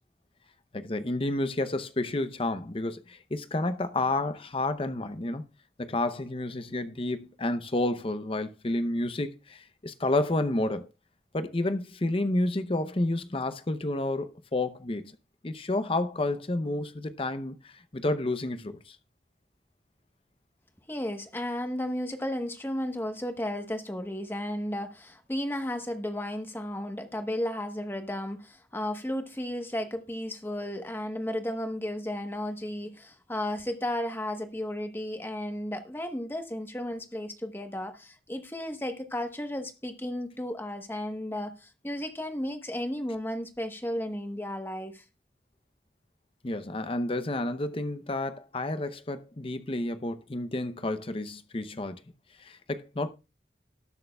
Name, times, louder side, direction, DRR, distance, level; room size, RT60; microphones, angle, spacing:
voice 1, 0.7-5.4 5.8-10.9 11.3-15.2 15.4-19.0 46.4-52.0 52.4-53.1, left 2 dB, 30° left, 0.7 m, -30 dB
voice 2, 20.9-45.0, left 1 dB, 15° left, 1.1 m, -34 dB
19.0 x 6.6 x 2.3 m
head